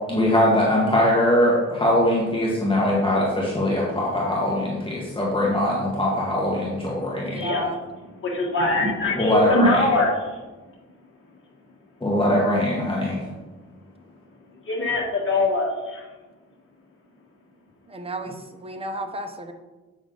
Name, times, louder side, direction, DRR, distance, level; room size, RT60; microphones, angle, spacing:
voice 1, 0.1-7.4 9.1-9.8 12.0-13.2, left 1 dB, 20° left, -4 dB, 1.5 m, -21 dB
voice 2, 7.2-7.8 17.9-19.5, right 2 dB, 20° right, 5 dB, 0.8 m, -33 dB
voice 3, 8.2-10.4 14.6-16.1, left 2 dB, 45° left, -4 dB, 1.5 m, -22 dB
8.0 x 6.0 x 3.9 m, 1.2 s
cardioid pair, 100°, 29 cm